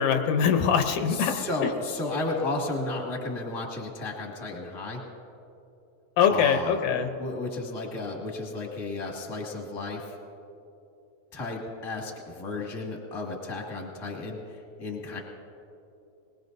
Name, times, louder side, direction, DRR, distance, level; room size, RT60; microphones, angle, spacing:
voice 1, 0.0-1.3 6.2-7.1, left 7 dB, 75° left, 6 dB, 2.1 m, -23 dB
voice 2, 1.1-5.0 6.3-10.1 11.3-15.2, left 2 dB, 10° left, -1 dB, 1.3 m, -33 dB
21.0 x 20.5 x 2.7 m, 2.8 s
omnidirectional pair, 3.6 m